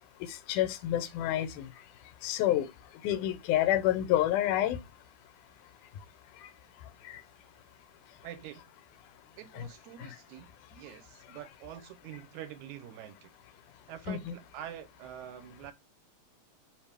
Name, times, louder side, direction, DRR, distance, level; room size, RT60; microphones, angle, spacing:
voice 1, 0.3-1.7 2.2-2.7 3.0-4.8 7.1-7.2 9.6-9.7 10.0-10.2 14.1-14.2, left 13 dB, 85° left, 2.1 m, -28 dB
voice 2, 8.2-8.6 9.4-13.3 13.9-15.7, right 11 dB, 80° right, 1.8 m, -46 dB
5.1 x 2.9 x 3.3 m
omnidirectional pair, 3.5 m